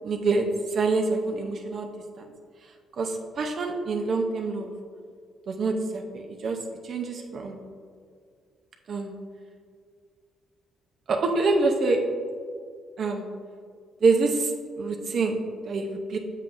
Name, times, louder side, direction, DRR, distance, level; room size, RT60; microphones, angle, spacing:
voice 1, 0.0-0.4 0.7-1.9 2.2-2.3 3.0-4.7 5.5-6.6 6.8-7.6 8.9-9.1 11.1-12.0 13.0-13.3 14.0-14.5 14.8-16.2, right 3 dB, 55° right, 3 dB, 0.7 m, -26 dB
7.4 x 7.0 x 2.6 m, 2.1 s
cardioid pair, 90°, 0 cm